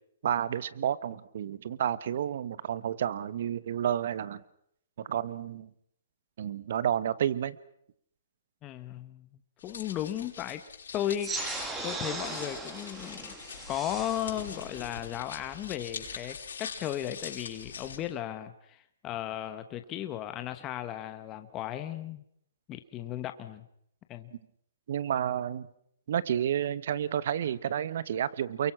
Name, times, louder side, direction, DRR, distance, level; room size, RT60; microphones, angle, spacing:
voice 1, 0.2-4.4 5.0-5.7 6.4-7.6 24.9-25.7 26.1-28.7, right 9 dB, 55° right, 18 dB, 1.1 m, -30 dB
voice 2, 8.6-10.6 10.9-11.4 11.8-13.4 13.7-22.2 22.7-23.6 24.1-24.3, left 11 dB, 20° left, 9 dB, 1.0 m, -36 dB
sound 1, 9.6-18.0, left 6 dB, 85° left, 6.3 m, -43 dB
sound 2, 11.2-16.2, right 3 dB, 10° right, 2.1 m, -39 dB
29.5 x 23.0 x 5.9 m, 0.71 s
hypercardioid pair, 165°, 0 cm